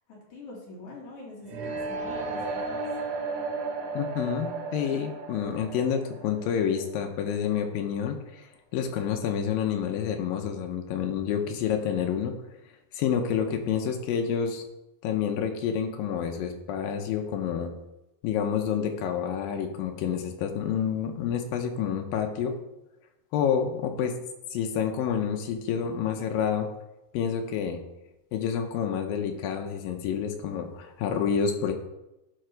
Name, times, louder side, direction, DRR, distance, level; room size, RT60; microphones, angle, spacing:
voice 1, 0.1-2.8, left 2 dB, 50° left, -5 dB, 3.6 m, -45 dB
sound 1, 1.5-7.4, right 3 dB, 80° right, 3.5 m, -34 dB
voice 2, 3.9-8.5 8.7-12.3 12.9-14.6 15.0-17.7 18.2-22.6 23.3-24.1 24.5-26.7 27.1-27.8 28.3-31.7, left 8 dB, 80° left, 4 dB, 2.2 m, -28 dB
11.5 x 4.7 x 4.6 m, 0.93 s
omnidirectional pair, 4.7 m